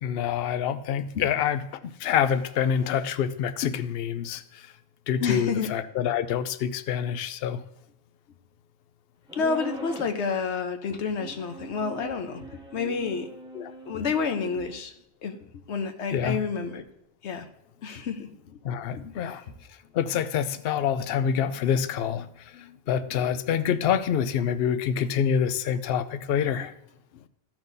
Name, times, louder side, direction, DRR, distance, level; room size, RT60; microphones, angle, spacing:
voice 1, 0.0-1.6 2.0-4.6 5.1-7.6 13.5-13.7 16.1-16.4 18.6-19.4 19.9-22.3 22.5-26.7, left 8 dB, 65° left, 12 dB, 0.8 m, -26 dB
voice 2, 5.2-5.7 9.3-13.3 13.9-14.9 15.2-16.8 17.2-17.5 17.8-18.6 19.0-19.4 23.1-23.2, left 5 dB, 85° left, 7 dB, 1.2 m, -30 dB
sound 1, 9.3-10.2 11.1-14.8, right 2 dB, 5° right, 1.1 m, -41 dB
14.5 x 5.9 x 2.7 m, 0.82 s
omnidirectional pair, 1.1 m